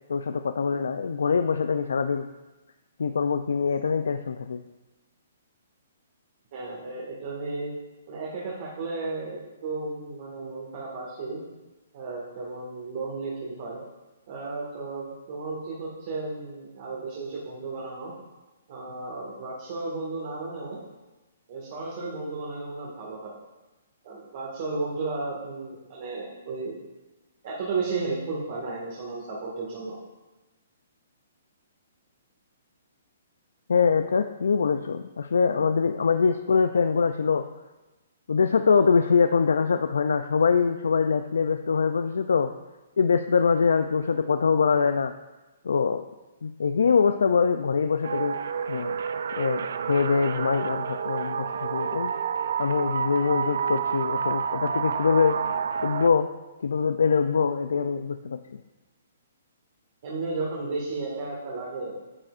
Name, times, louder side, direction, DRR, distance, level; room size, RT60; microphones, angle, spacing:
voice 1, 0.1-2.3 3.0-4.6 33.7-37.4 38.3-42.5 43.0-45.1 45.6-46.0 46.4-48.4 48.7-48.9 49.4-52.1 52.6-55.4 55.8-56.3 56.6-58.4, left 5 dB, 85° left, 8 dB, 0.4 m, -23 dB
voice 2, 6.5-7.7 8.1-11.4 11.9-13.8 14.3-18.1 18.7-20.8 21.5-23.3 24.0-26.8 27.4-30.0 60.0-62.0, right 3 dB, 45° right, -5 dB, 1.8 m, -34 dB
sound 1, 48.0-56.1, right 7 dB, 70° right, 0.5 m, -29 dB
9.7 x 7.7 x 2.5 m, 1.1 s
hypercardioid pair, 155°, 0 cm